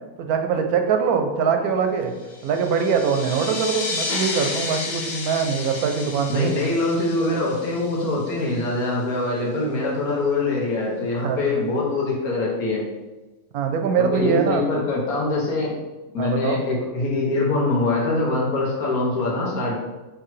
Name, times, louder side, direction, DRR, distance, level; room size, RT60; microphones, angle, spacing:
voice 1, 0.2-2.1 2.4-6.5 11.2-11.4 13.5-14.6 16.2-16.6, right 6 dB, 90° right, 5 dB, 1.1 m, -22 dB
sound 1, 2.3-8.5, left 3 dB, 65° left, 0.4 m, -32 dB
voice 2, 6.3-12.8 14.0-15.7 16.1-19.8, left 2 dB, 80° left, -4 dB, 1.6 m, -23 dB
4.7 x 3.2 x 3.2 m, 1.1 s
omnidirectional pair, 1.5 m